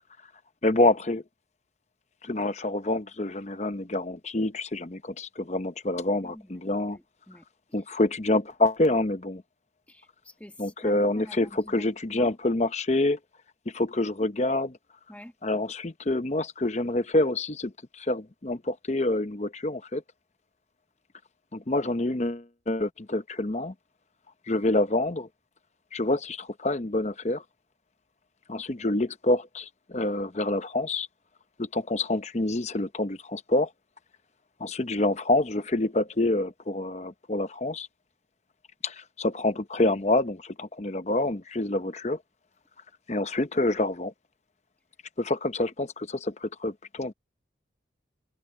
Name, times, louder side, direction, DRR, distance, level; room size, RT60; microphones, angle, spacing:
voice 1, 0.6-1.2 2.2-7.0 7.7-9.4 10.6-13.2 13.7-14.8 15.4-20.0 21.5-23.7 24.5-25.3 25.9-27.4 28.5-31.1 31.6-33.7 34.6-37.9 38.8-42.2 43.1-44.1 45.2-47.1, left 2 dB, 35° left, 0.8 m, -27 dB
voice 2, 6.1-6.6 6.9-7.4 9.9-12.3 15.1-15.3, left 1 dB, 10° left, 1.4 m, -47 dB
head